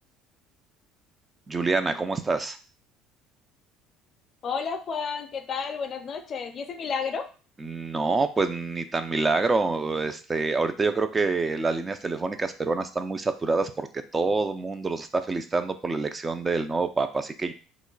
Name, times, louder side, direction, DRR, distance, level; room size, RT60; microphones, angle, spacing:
voice 1, 1.5-2.6 7.6-17.5, right 3 dB, 25° right, 9 dB, 0.4 m, -27 dB
voice 2, 4.4-7.3, left 6 dB, 45° left, 8 dB, 0.5 m, -31 dB
3.0 x 2.1 x 3.8 m, 0.36 s
hypercardioid pair, 75°, 0 cm